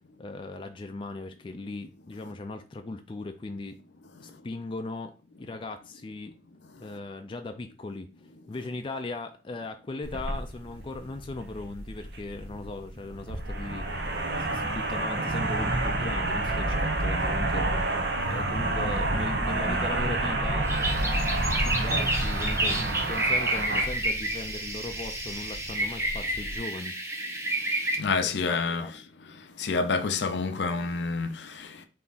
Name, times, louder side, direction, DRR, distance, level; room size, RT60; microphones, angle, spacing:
voice 1, 0.2-3.8 4.2-6.4 6.8-8.1 8.5-17.7 18.3-27.0 28.2-28.9, left 2 dB, 30° left, 0.3 m, -38 dB
sound 1, 10.0-26.6, right 2 dB, 65° right, 0.7 m, -29 dB
sound 2, 20.6-27.9, right 1 dB, 15° right, 0.7 m, -30 dB
voice 2, 28.0-29.0 29.6-31.9, left 4 dB, 80° left, 0.5 m, -28 dB
3.5 x 2.8 x 4.0 m
head